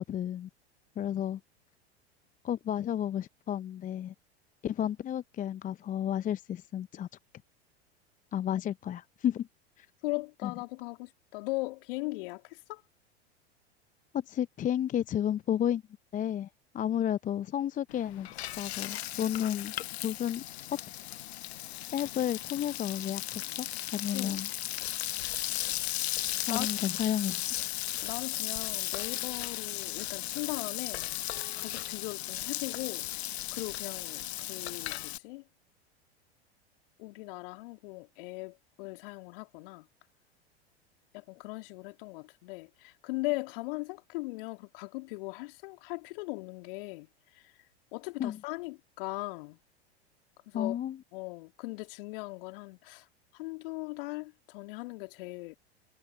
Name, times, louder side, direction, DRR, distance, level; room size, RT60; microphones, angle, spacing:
voice 1, 0.1-0.5 1.0-1.4 2.4-4.1 4.6-7.1 8.3-9.5 9.8-9.9 10.4-10.5 14.1-15.8 16.1-16.5 16.7-19.7 20.0-20.4 21.9-23.7 23.9-24.5 26.5-27.4 48.2-48.4 50.5-51.0, left 10 dB, 25° left, 0.8 m, -32 dB
voice 2, 10.0-12.8 24.1-24.4 26.5-26.7 28.0-31.1 31.6-33.1 33.5-35.5 37.0-39.9 41.1-47.6 47.9-49.6 50.5-50.8 51.1-53.1 53.3-55.6, left 25 dB, 55° left, 3.2 m, -39 dB
Frying (food), 17.9-35.2, left 14 dB, 70° left, 0.5 m, -36 dB
figure-of-eight pair, 90°, 33 cm